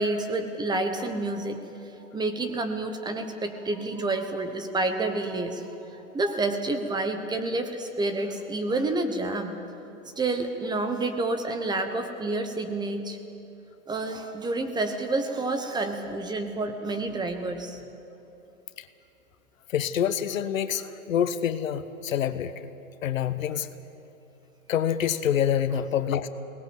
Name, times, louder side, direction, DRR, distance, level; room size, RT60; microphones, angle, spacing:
voice 1, 0.0-1.6 2.1-9.6 10.2-13.2 13.9-17.8, right 2 dB, 10° right, 7 dB, 1.2 m, -29 dB
voice 2, 19.7-22.5 23.0-23.7 24.7-26.3, left 9 dB, 65° left, 12 dB, 1.3 m, -26 dB
22.5 x 19.0 x 7.9 m, 2.9 s
hypercardioid pair, 130°, 43 cm